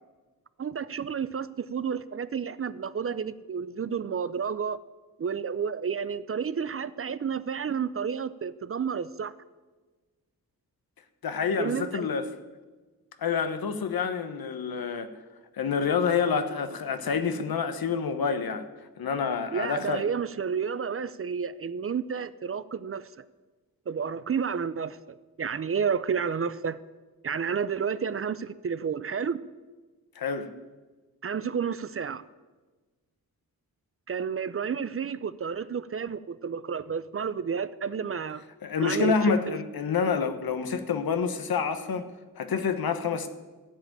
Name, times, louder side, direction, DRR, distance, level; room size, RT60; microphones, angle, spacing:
voice 1, 0.6-4.8 5.2-9.3 11.6-12.1 19.5-23.2 23.9-26.8 27.2-29.4 31.2-32.3 34.1-38.4 38.8-39.6, right 6 dB, 40° right, 0.4 m, -31 dB
voice 2, 11.2-12.3 13.2-15.1 15.6-18.7 19.0-20.0 30.2-30.5 38.6-42.1 42.4-43.3, left 6 dB, 75° left, 1.0 m, -28 dB
14.5 x 5.1 x 9.0 m
cardioid pair, 75°, 36 cm